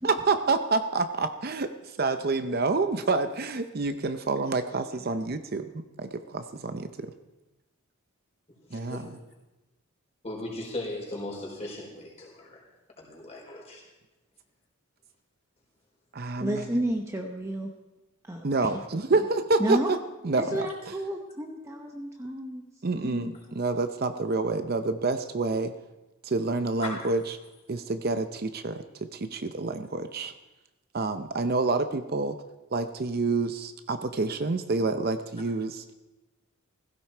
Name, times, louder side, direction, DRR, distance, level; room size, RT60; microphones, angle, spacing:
voice 1, 0.0-1.7 2.0-5.7 6.0-6.9 8.7-9.0 16.1-16.6 18.4-20.0 20.2-20.7 22.8-25.7 26.2-27.2 27.7-28.8 29.1-30.3 30.9-32.4 32.7-35.8, right 3 dB, 45° right, 9 dB, 0.6 m, -28 dB
voice 2, 8.7-9.1 10.2-12.6 13.0-13.8 26.8-27.1, left 2 dB, 30° left, -2 dB, 4.7 m, -38 dB
voice 3, 16.4-17.7 18.2-18.8 19.1-19.2 19.6-19.9 20.3-22.6 23.0-23.6, right 1 dB, 15° right, 2 dB, 0.8 m, -31 dB
16.0 x 16.0 x 4.5 m, 1.1 s
head